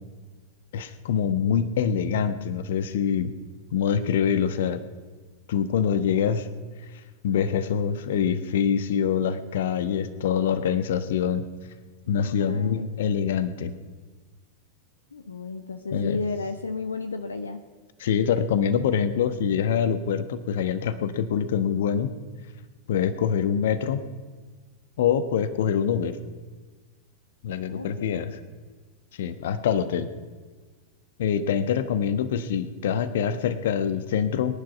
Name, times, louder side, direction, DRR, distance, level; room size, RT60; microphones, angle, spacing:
voice 1, 0.7-3.3 3.7-4.8 5.5-6.5 7.2-11.4 12.1-13.7 15.9-16.2 18.0-22.1 22.9-24.0 25.0-26.2 27.4-28.3 29.2-30.1 31.2-34.6, left 7 dB, 55° left, 11 dB, 1.1 m, -25 dB
voice 2, 12.1-12.9 15.1-17.7 27.7-28.3 29.6-29.9, left 4 dB, 75° left, 8 dB, 0.8 m, -34 dB
22.5 x 10.5 x 5.8 m, 1.4 s
figure-of-eight pair, 90°, 0 cm